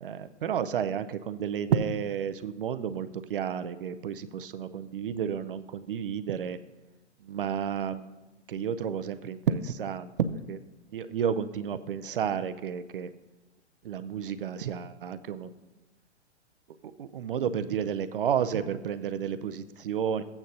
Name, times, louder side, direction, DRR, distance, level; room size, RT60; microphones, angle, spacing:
voice 1, 0.0-6.6 7.2-8.1 8.5-10.6 10.9-13.1 13.8-15.5 17.0-20.2, right 8 dB, 50° right, 12 dB, 0.5 m, -31 dB
15.0 x 8.8 x 2.7 m, 1.1 s
figure-of-eight pair, 115°, 35 cm